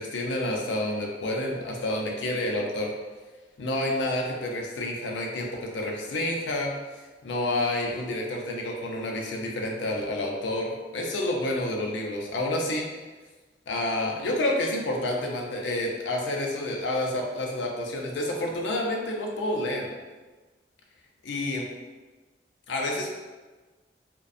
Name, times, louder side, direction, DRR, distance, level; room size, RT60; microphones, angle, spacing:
voice 1, 0.0-2.9 3.6-6.7 7.2-12.9 13.7-19.9 21.2-21.7 22.7-23.1, left 1 dB, 85° left, 0 dB, 0.4 m, -29 dB
2.4 x 2.1 x 2.5 m, 1.3 s
head